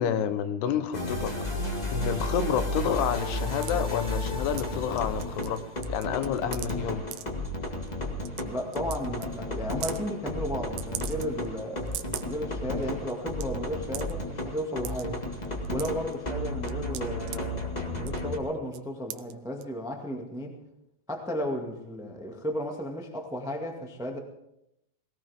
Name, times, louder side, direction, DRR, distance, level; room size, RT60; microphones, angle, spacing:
voice 1, 0.0-1.3 1.9-5.6 5.9-7.0, left 8 dB, 85° left, 11 dB, 3.0 m, -29 dB
sound 1, 0.9-18.4, left 1 dB, 35° left, 0.6 m, -33 dB
sound 2, 3.6-3.7 4.6-4.7 5.0-5.6 5.8-6.7 7.1-7.2 7.9-8.0 8.3-8.4 8.7-9.0 9.2-9.3 9.7-10.0 10.8-11.5 11.8-12.3 12.8-12.9 13.1-13.4 13.9-14.1 14.8-15.0 15.5-16.1 16.7-17.4 18.0-18.3 18.7-18.8 19.1-19.3 19.6-19.7, right 14 dB, 80° right, 2.2 m, -38 dB
voice 2, 8.4-15.2 15.7-20.5 21.1-24.2, equal, 5° right, 2 dB, 0.4 m, -34 dB
20.0 x 18.0 x 3.6 m, 0.83 s
omnidirectional pair, 4.5 m